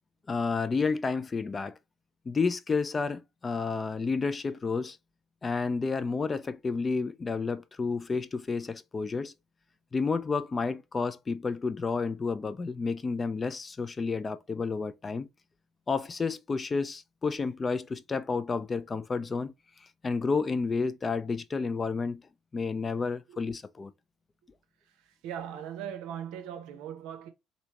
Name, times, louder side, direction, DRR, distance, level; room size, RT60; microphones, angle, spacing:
voice 1, 0.3-1.7 2.3-5.0 5.4-9.3 9.9-15.3 15.9-19.5 20.0-22.2 22.5-23.9, left 4 dB, 30° left, 0.3 m, -30 dB
voice 2, 25.0-27.3, right 9 dB, 65° right, 0.6 m, -39 dB
3.2 x 2.6 x 2.8 m
figure-of-eight pair, 55°, 0 cm